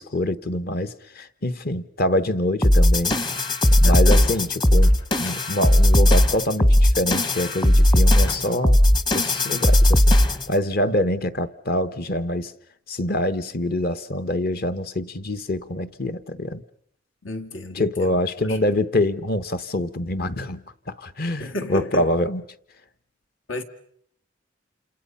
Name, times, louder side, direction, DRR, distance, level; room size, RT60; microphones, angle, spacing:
voice 1, 0.0-3.2 3.7-10.2 10.5-12.5 12.9-16.6 17.7-22.4, left 1 dB, 50° left, 1.1 m, -25 dB
sound 1, 2.6-10.5, left 1 dB, 25° left, 1.0 m, -17 dB
voice 2, 3.8-4.3 17.2-18.8 21.4-22.1 23.5-23.6, left 1 dB, 85° left, 2.2 m, -32 dB
Microwave oven, 4.5-5.6 8.1-8.7, left 3 dB, 70° left, 6.6 m, -44 dB
29.5 x 27.5 x 5.6 m
head